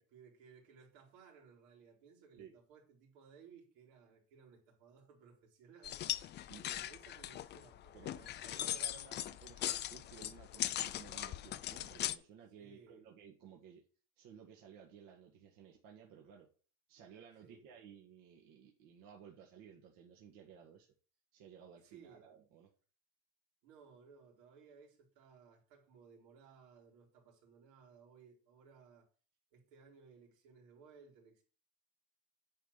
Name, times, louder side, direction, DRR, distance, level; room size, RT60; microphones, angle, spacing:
voice 1, 0.1-6.0 6.6-8.4 12.6-13.1 17.4-17.7 21.8-22.3 23.6-29.1 29.5-31.4, right 6 dB, 85° right, 4.1 m, -61 dB
sound 1, 5.8-12.2, left 13 dB, 30° left, 0.4 m, -40 dB
voice 2, 7.9-13.8 14.2-16.5 16.9-20.9 21.3-22.7, right 7 dB, 60° right, 1.8 m, -57 dB
10.0 x 4.1 x 7.3 m
cardioid pair, 150°, 38 cm